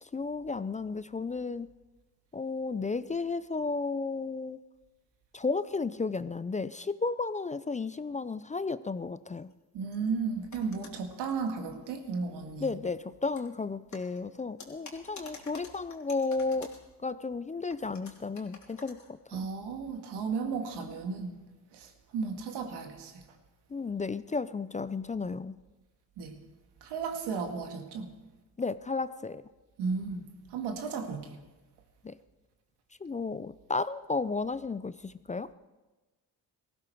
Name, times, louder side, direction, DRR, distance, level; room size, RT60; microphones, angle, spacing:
voice 1, 0.0-1.7 2.3-4.6 5.3-9.5 12.6-16.7 17.0-19.5 23.7-25.6 28.6-29.5 32.0-32.2 33.0-35.5, left 4 dB, 20° left, 15 dB, 0.4 m, -33 dB
sound 1, 9.4-9.5 9.9-10.1 10.5-11.9 13.3-13.5 13.9-16.9 17.7-19.1, left 4 dB, 45° left, 3.1 m, -50 dB
voice 2, 9.7-12.7 19.3-21.4 21.7-23.1 26.2-26.4 26.8-28.1 29.8-30.2 30.5-31.4, right 5 dB, 90° right, 5 dB, 2.0 m, -34 dB
18.0 x 15.5 x 4.6 m, 1.2 s
cardioid pair, 80°, 39 cm